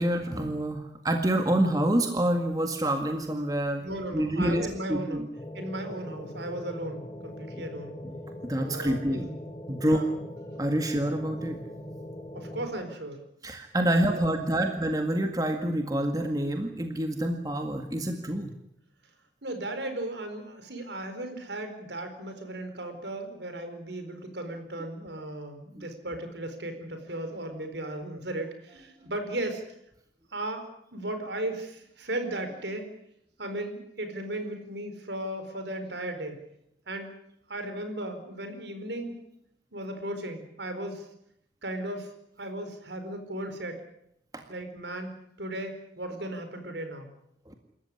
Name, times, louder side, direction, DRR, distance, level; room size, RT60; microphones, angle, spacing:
voice 1, 0.0-3.8 4.1-5.3 8.0-8.2 8.4-9.3 9.7-10.0 10.6-11.6 13.4-18.5 44.3-44.4 47.5-47.6, right 1 dB, 20° right, 4 dB, 1.8 m, -27 dB
voice 2, 3.8-5.2 5.5-7.9 8.6-9.3 9.8-10.1 12.3-13.2 14.1-14.7 19.4-29.6 30.3-30.6 30.9-32.9 33.4-36.4 36.9-37.1 37.5-39.2 39.7-41.1 41.6-42.1 42.4-43.8 44.5-45.1 45.4-47.1, right 1 dB, 70° right, 7 dB, 4.4 m, -36 dB
sound 1, 5.4-12.6, left 1 dB, 25° left, 3.9 m, -41 dB
27.5 x 14.0 x 9.8 m, 0.78 s
head